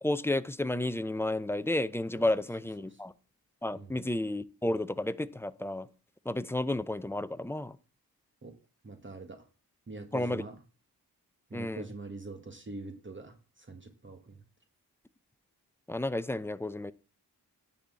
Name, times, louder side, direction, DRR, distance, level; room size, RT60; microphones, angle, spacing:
voice 1, 0.0-3.1 3.6-5.9 6.3-7.7 10.1-10.4 11.5-11.8 15.9-16.9, left 1 dB, 5° left, 0.5 m, -31 dB
voice 2, 8.8-9.5 9.9-10.6 11.5-14.4, right 3 dB, 30° right, 1.4 m, -44 dB
10.0 x 4.3 x 7.4 m
cardioid pair, 70°, 39 cm